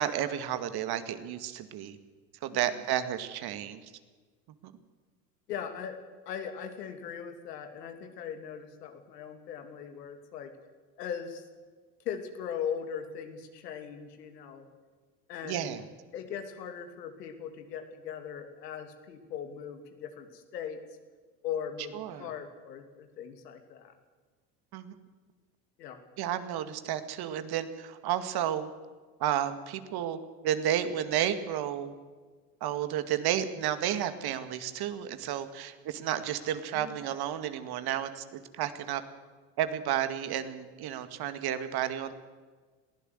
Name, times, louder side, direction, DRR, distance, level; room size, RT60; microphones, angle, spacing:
voice 1, 0.0-2.0 2.4-3.8 4.6-4.7 15.4-15.8 21.9-22.3 24.7-24.9 26.2-28.7 29.2-31.9 32.6-39.0 39.6-42.1, right 10 dB, 50° right, 10 dB, 2.1 m, -32 dB
voice 2, 5.5-6.0 6.3-10.5 11.0-11.5 12.0-14.6 15.3-15.8 16.1-20.8 21.4-23.9 25.8-26.0 36.7-37.0, left 8 dB, 80° left, 6 dB, 2.9 m, -39 dB
22.0 x 15.5 x 8.0 m, 1.4 s
hypercardioid pair, 80°, 47 cm